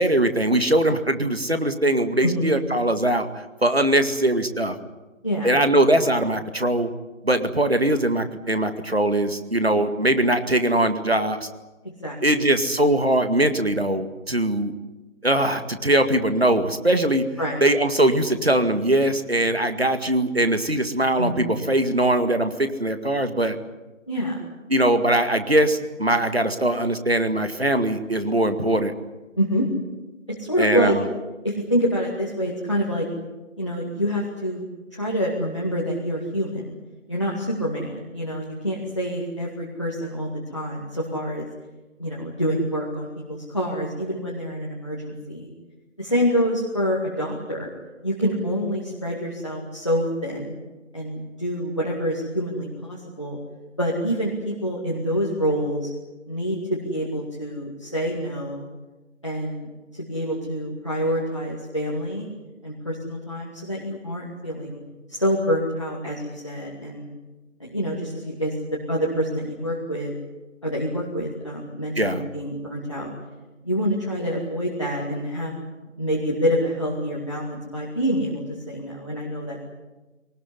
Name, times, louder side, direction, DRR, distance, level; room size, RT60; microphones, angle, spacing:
voice 1, 0.0-3.3 3.6-4.8 5.4-6.9 7.2-11.5 12.2-14.7 15.2-17.2 17.6-23.6 24.7-28.9 30.6-31.1 72.0-72.2, right 1 dB, 50° right, 8 dB, 2.1 m, -21 dB
voice 2, 2.2-2.6 5.2-5.5 12.0-12.2 17.4-17.6 21.2-21.6 24.1-24.4 29.4-29.7 30.4-30.9 31.4-33.0 33.6-34.6 34.9-36.7 37.1-41.5 42.0-45.5 46.0-47.7 48.0-50.6 50.9-53.4 53.8-55.9 56.3-58.7 59.2-62.3 62.6-64.8 65.1-67.1 67.6-68.5 68.9-70.1 70.6-73.1 73.6-75.5 76.0-79.6, equal, 25° left, -4 dB, 2.2 m, -26 dB
23.5 x 19.0 x 9.8 m, 1.2 s
figure-of-eight pair, 175°, 39 cm